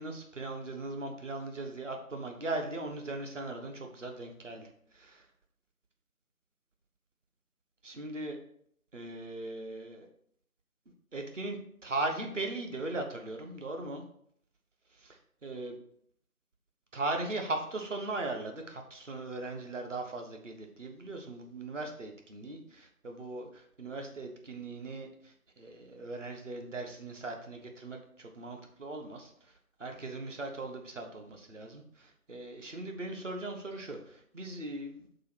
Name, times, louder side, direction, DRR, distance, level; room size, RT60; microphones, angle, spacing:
voice 1, 0.0-5.3 7.8-8.4 8.9-10.1 11.1-14.0 14.9-15.7 16.9-29.5 29.8-35.1, right 2 dB, 50° right, 3 dB, 1.3 m, -39 dB
5.5 x 4.0 x 5.9 m, 0.67 s
figure-of-eight pair, 160°, 46 cm